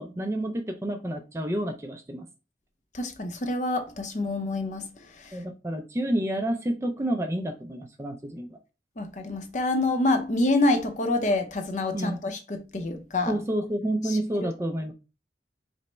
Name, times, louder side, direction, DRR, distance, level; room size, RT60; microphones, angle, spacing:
voice 1, 0.0-2.3 5.3-8.6 11.9-12.2 13.3-14.9, right 1 dB, 15° right, 0.4 m, -29 dB
voice 2, 2.9-5.4 9.0-13.4 14.0-14.5, left 2 dB, 45° left, 0.7 m, -27 dB
5.2 x 2.1 x 4.2 m
head